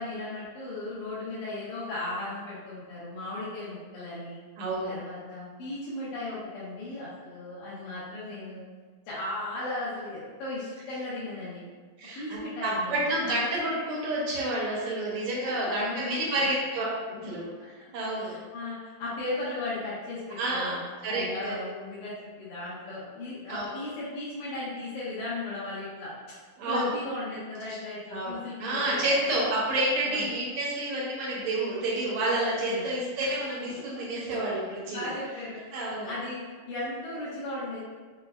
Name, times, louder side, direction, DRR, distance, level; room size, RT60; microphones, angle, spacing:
voice 1, 0.0-4.4 4.9-8.7 9.1-11.6 12.2-13.2 15.6-16.5 18.0-20.8 21.1-26.1 26.7-29.1 30.0-30.3 32.7-32.9 33.2-33.3 33.9-34.0 34.8-37.8, left 2 dB, 80° left, -11 dB, 2.2 m, -36 dB
voice 2, 4.6-5.0 12.0-18.3 20.4-20.8 21.0-21.7 23.5-23.7 26.6-26.9 28.1-35.1 35.7-36.1, right 1 dB, 75° right, -5 dB, 1.3 m, -29 dB
5.4 x 2.0 x 2.3 m, 1.5 s
omnidirectional pair, 3.3 m